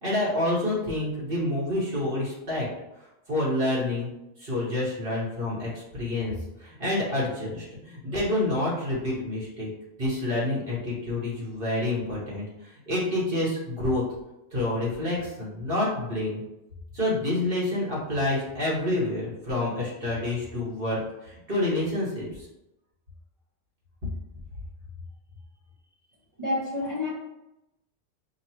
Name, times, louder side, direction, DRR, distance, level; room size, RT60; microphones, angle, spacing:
voice 1, 0.0-2.7 3.3-4.1 4.4-6.3 6.6-9.7 10.0-14.0 14.5-16.4 16.9-22.5, left 1 dB, 50° right, -7 dB, 1.4 m, -28 dB
voice 2, 26.4-27.1, left 2 dB, 30° right, -8 dB, 1.0 m, -28 dB
5.4 x 2.4 x 2.9 m, 0.92 s
omnidirectional pair, 1.3 m